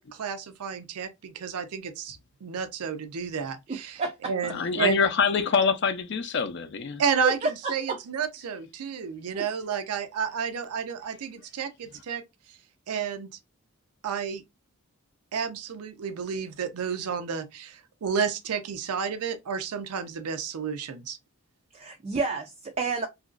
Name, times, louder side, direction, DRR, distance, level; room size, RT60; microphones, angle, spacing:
voice 1, 0.0-4.0 4.3-5.0 7.0-7.4 7.7-12.2 12.9-13.3 14.0-14.4 15.3-21.2, right 6 dB, 85° right, 0.5 m, -31 dB
voice 2, 3.7-4.3 7.2-8.0 9.3-9.4 21.7-23.1, right 4 dB, 30° right, 0.3 m, -30 dB
voice 3, 4.5-7.0 9.0-9.1, left 5 dB, 50° left, 0.4 m, -25 dB
2.9 x 2.5 x 2.4 m
head